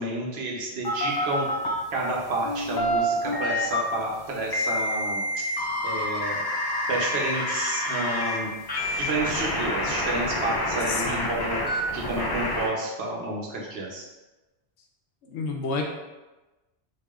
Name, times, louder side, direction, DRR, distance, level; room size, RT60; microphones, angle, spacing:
voice 1, 0.0-1.5 1.9-5.2 5.8-6.4 6.9-8.5 9.0-11.6 11.9-14.0, right 2 dB, 70° right, -2 dB, 1.0 m, -30 dB
sound 1, 0.8-1.7 2.4-3.8 4.5-8.4 8.7-12.7, left 1 dB, 35° left, 0.3 m, -28 dB
voice 2, 10.9-11.4 15.2-15.8, left 4 dB, 80° left, 2 dB, 0.9 m, -30 dB
4.7 x 2.6 x 2.4 m, 1.1 s
omnidirectional pair, 1.1 m